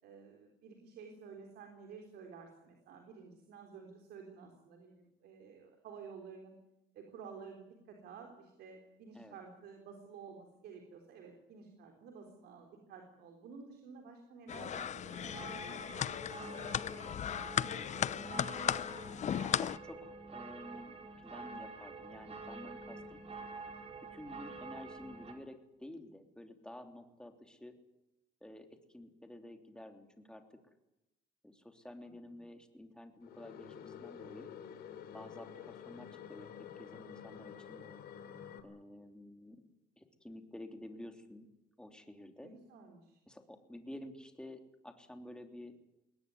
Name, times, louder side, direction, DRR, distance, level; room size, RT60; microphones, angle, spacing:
voice 1, 0.0-6.6 6.9-16.6 32.3-32.4 42.4-43.2, right 5 dB, 75° right, 3 dB, 3.9 m, -52 dB
sound 1, 14.5-19.8, left 9 dB, 45° left, 0.7 m, -36 dB
sound 2, 15.1-25.3, right 3 dB, 35° right, 4.5 m, -47 dB
voice 2, 18.1-18.8 19.6-21.0 21.2-23.2 24.1-27.8 28.4-30.6 31.4-34.5 35.1-36.5 36.8-37.8 38.6-39.6 40.0-41.5 41.8-42.5 43.3-45.7, left 1 dB, 5° left, 6 dB, 3.3 m, -51 dB
sound 3, 33.2-38.6, left 8 dB, 70° left, 3.1 m, -49 dB
21.5 x 18.5 x 9.7 m, 0.90 s
cardioid pair, 110°, 17 cm